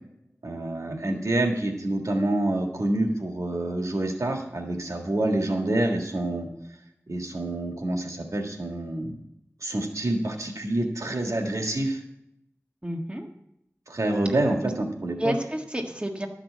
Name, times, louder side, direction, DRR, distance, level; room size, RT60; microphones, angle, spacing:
voice 1, 0.4-6.5 7.1-9.2 9.6-12.0 13.9-15.4, right 1 dB, 85° right, 2 dB, 1.7 m, -27 dB
voice 2, 12.8-13.3 15.2-16.3, equal, 20° right, 2 dB, 1.6 m, -30 dB
12.0 x 6.0 x 7.4 m, 0.79 s
wide cardioid pair, 50°, 5 cm